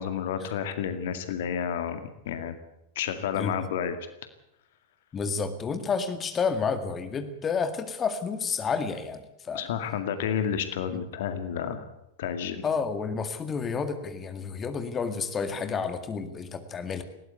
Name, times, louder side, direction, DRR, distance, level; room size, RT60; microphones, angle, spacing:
voice 1, 0.0-2.6 3.0-4.0 9.5-11.8 12.2-12.6, left 8 dB, 55° left, 9 dB, 2.0 m, -30 dB
voice 2, 5.1-9.6 10.9-11.0 12.6-17.0, left 5 dB, 20° left, 9 dB, 2.1 m, -30 dB
20.0 x 17.5 x 8.2 m, 0.85 s
figure-of-eight pair, 90°, 0 cm